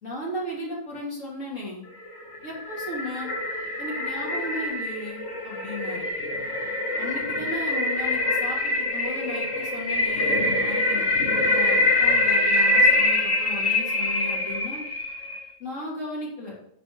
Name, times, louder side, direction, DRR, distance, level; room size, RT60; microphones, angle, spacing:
voice 1, 0.0-1.8 2.4-3.3 3.8-6.1 7.0-11.1 11.5-14.8 15.6-16.5, left 1 dB, 70° left, -4 dB, 3.3 m, -35 dB
sound 1, 2.1-15.4, left 2 dB, 55° left, 1.7 m, -24 dB
9.7 x 5.1 x 5.2 m, 0.72 s
omnidirectional pair, 1.4 m